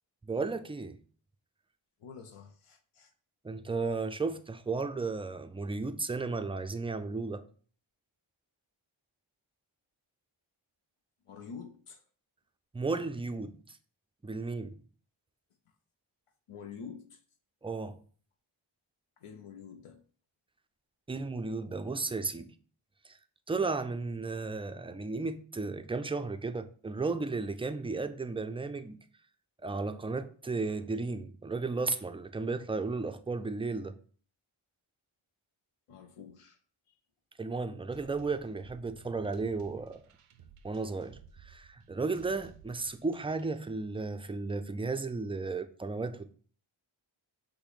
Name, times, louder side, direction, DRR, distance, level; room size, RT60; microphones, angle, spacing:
voice 1, 0.2-1.0 3.4-7.4 12.7-13.8 14.2-14.8 17.6-18.0 21.1-22.5 23.1-23.2 23.5-29.0 29.6-34.0 37.4-40.0 40.6-46.3, right 3 dB, 15° right, 0.3 m, -34 dB
voice 2, 2.0-3.1 11.3-12.0 16.5-17.2 19.2-20.0 35.9-36.6, left 6 dB, 85° left, 0.6 m, -47 dB
sound 1, 37.9-43.6, right 7 dB, 90° right, 0.5 m, -57 dB
5.7 x 2.1 x 3.9 m
cardioid pair, 45°, 50 cm